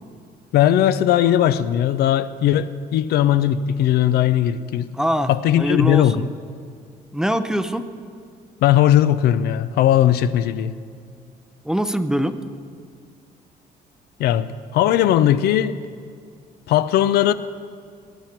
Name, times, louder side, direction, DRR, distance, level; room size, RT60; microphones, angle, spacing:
voice 1, 0.5-4.9 5.3-6.2 8.6-10.7 14.2-15.8 16.7-17.3, left 11 dB, 70° left, 0.5 m, -18 dB
voice 2, 4.9-5.3 5.6-6.3 7.1-7.8 11.6-12.4, equal, 5° right, 0.5 m, -23 dB
17.5 x 10.0 x 4.5 m
cardioid pair, 110°, 17 cm